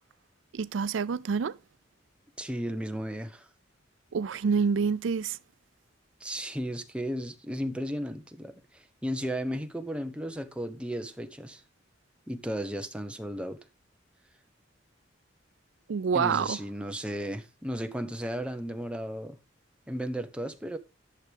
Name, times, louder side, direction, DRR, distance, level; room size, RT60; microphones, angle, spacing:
voice 1, 0.5-1.6 4.1-5.4 15.9-16.6, right 5 dB, 80° right, 0.4 m, -27 dB
voice 2, 2.4-3.5 6.2-11.6 12.3-13.6 16.1-19.4 19.9-20.8, equal, 5° right, 0.9 m, -34 dB
11.0 x 6.6 x 3.5 m
head